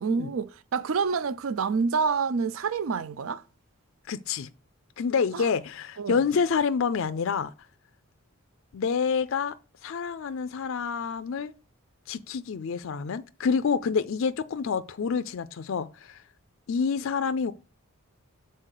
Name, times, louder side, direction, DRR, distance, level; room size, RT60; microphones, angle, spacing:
voice 1, 0.0-3.4 5.3-5.4 6.0-6.2, right 5 dB, 65° right, 0.4 m, -27 dB
voice 2, 4.1-4.5 5.0-7.5 8.7-9.5 9.8-11.5 12.1-16.2 16.7-17.5, left 5 dB, 65° left, 0.4 m, -27 dB
7.5 x 4.2 x 6.5 m
head